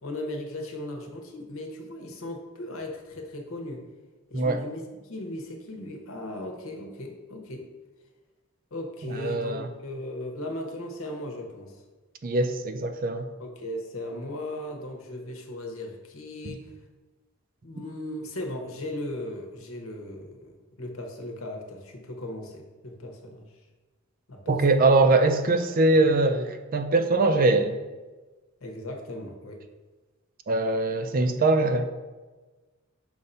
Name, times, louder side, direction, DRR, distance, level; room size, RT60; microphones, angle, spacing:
voice 1, 0.0-3.9 4.3-7.7 8.7-11.8 13.4-16.7 17.6-20.5 20.8-23.5 24.3-24.6 28.6-29.6, left 1 dB, 80° left, 3 dB, 1.0 m, -37 dB
voice 2, 9.0-9.7 12.2-13.2 16.4-16.5 24.5-27.7 30.5-31.9, right 2 dB, 45° right, 8 dB, 0.4 m, -22 dB
6.6 x 2.7 x 5.4 m, 1.3 s
head